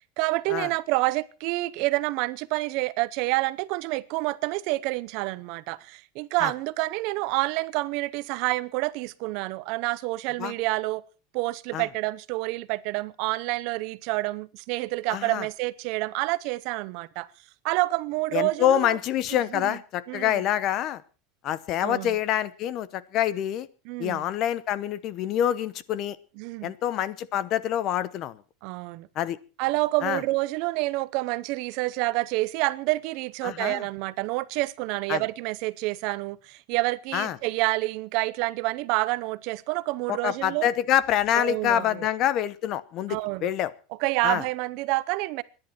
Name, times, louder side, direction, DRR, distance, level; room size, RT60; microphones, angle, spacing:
voice 1, 0.2-11.0 11.3-17.3 17.6-19.0 19.5-19.8 20.1-20.4 21.8-22.2 23.8-24.2 26.4-26.7 28.6-29.1 29.6-40.7 41.3-42.1 43.1-43.5 44.0-45.4, right 21 dB, 50° right, 0.8 m, -28 dB
voice 2, 15.1-15.4 18.3-21.0 21.4-23.7 24.0-26.2 26.6-28.4 29.2-29.4 30.0-30.2 33.4-33.8 35.1-35.2 37.1-37.4 40.1-43.7 44.2-44.4, left 11 dB, 35° left, 0.9 m, -26 dB
25.5 x 11.0 x 4.4 m
supercardioid pair, 170°, 0 cm